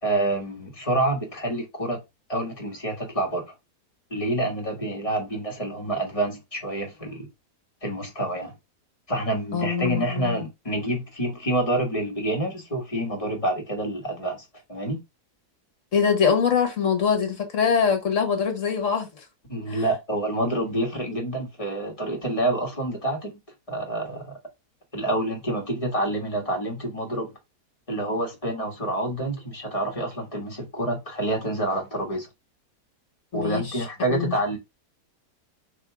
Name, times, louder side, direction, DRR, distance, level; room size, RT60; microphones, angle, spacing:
voice 1, 0.0-2.0 2.3-3.4 4.1-7.3 7.8-8.5 9.1-15.0 19.5-23.3 23.7-24.3 24.9-27.3 27.9-32.3 33.3-34.6, right 1 dB, 20° left, 1.4 m, -27 dB
voice 2, 9.5-10.4 15.9-19.1 19.7-19.8 33.3-34.4, left 6 dB, 50° left, 1.5 m, -23 dB
3.7 x 2.8 x 4.6 m
omnidirectional pair, 1.8 m